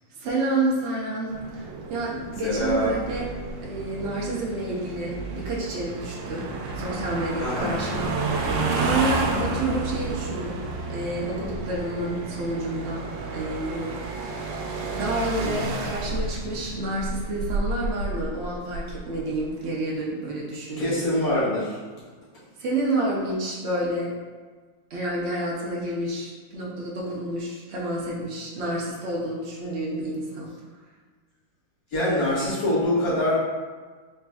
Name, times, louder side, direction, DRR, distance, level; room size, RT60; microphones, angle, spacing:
voice 1, 0.2-3.3 3.6-6.5 6.7-8.4 8.7-10.6 10.9-14.6 14.9-21.0 22.6-24.1 24.9-30.5, right 1 dB, 65° right, -3 dB, 0.6 m, -29 dB
sound 1, 1.3-19.5, right 3 dB, 80° right, 1.3 m, -31 dB
voice 2, 2.4-2.9 7.4-7.8 20.8-21.8 31.9-33.4, left 1 dB, 70° left, -11 dB, 2.2 m, -24 dB
4.1 x 3.8 x 2.3 m, 1.4 s
omnidirectional pair, 2.0 m